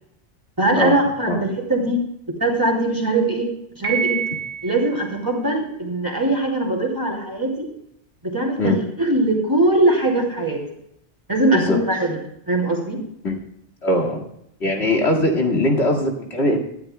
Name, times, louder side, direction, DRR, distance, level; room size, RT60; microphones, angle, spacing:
voice 1, 0.6-2.0 2.3-3.5 3.8-4.2 4.6-7.7 8.2-10.6 11.3-12.2 12.5-13.0, right 2 dB, 20° right, 0 dB, 2.9 m, -21 dB
Piano, 3.8-5.0, right 7 dB, 90° left, 4.1 m, -26 dB
voice 2, 13.8-14.2 14.6-16.6, left 1 dB, 70° left, 2 dB, 2.4 m, -20 dB
20.0 x 12.0 x 2.2 m, 0.73 s
omnidirectional pair, 1.1 m